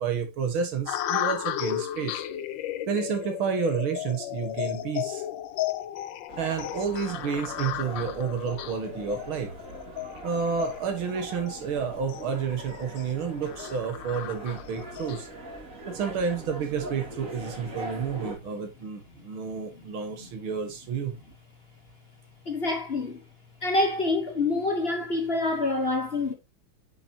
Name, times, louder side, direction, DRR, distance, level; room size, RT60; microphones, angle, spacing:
voice 1, 0.0-2.2 2.9-5.2 6.4-9.5 10.2-15.3 15.9-21.1, right 6 dB, 85° right, 2.4 m, -30 dB
sound 1, 0.9-15.2, left 12 dB, 75° left, 1.3 m, -35 dB
sound 2, 6.3-18.4, right 1 dB, 40° right, 2.4 m, -42 dB
voice 2, 22.5-23.2 23.6-26.3, left 2 dB, 35° left, 1.1 m, -26 dB
8.9 x 5.8 x 2.9 m
omnidirectional pair, 2.2 m